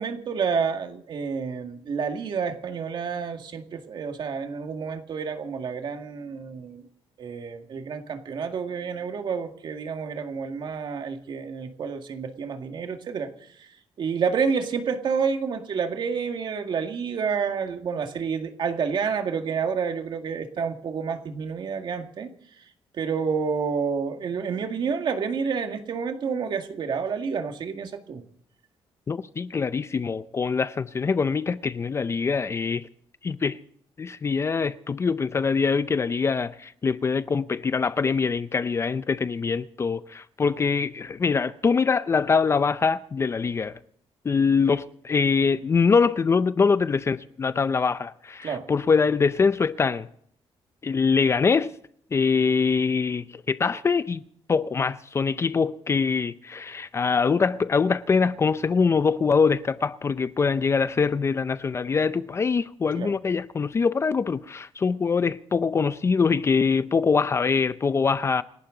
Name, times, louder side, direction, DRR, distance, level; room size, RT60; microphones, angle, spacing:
voice 1, 0.0-6.9 7.2-13.3 13.6-13.7 14.0-22.3 22.9-28.2 48.4-48.7 62.9-63.2, right 6 dB, 50° right, 2.0 m, -29 dB
voice 2, 29.1-32.9 33.2-33.6 34.0-43.8 44.2-50.1 50.8-51.7 52.1-54.2 54.5-68.4, left 5 dB, 25° left, 0.5 m, -23 dB
28.0 x 11.5 x 3.9 m
cardioid pair, 150°, 10 cm